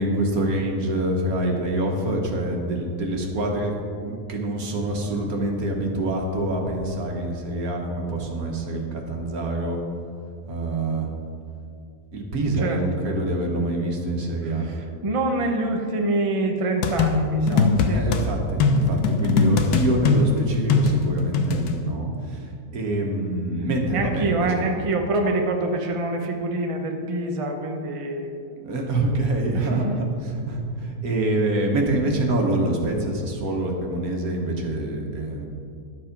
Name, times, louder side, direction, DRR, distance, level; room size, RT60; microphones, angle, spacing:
voice 1, 0.0-3.7 4.0-9.8 10.5-11.1 12.1-14.7 17.9-24.8 28.6-29.8 30.3-35.5, right 1 dB, 65° right, 1 dB, 1.8 m, -26 dB
voice 2, 12.6-13.0 14.4-18.1 23.9-28.7 29.5-30.0, right 2 dB, 30° right, 3 dB, 0.7 m, -26 dB
sound 1, 16.8-18.2 18.6-21.7, left 4 dB, 80° left, 1.3 m, -20 dB
11.5 x 7.3 x 5.2 m, 2.4 s
omnidirectional pair, 1.6 m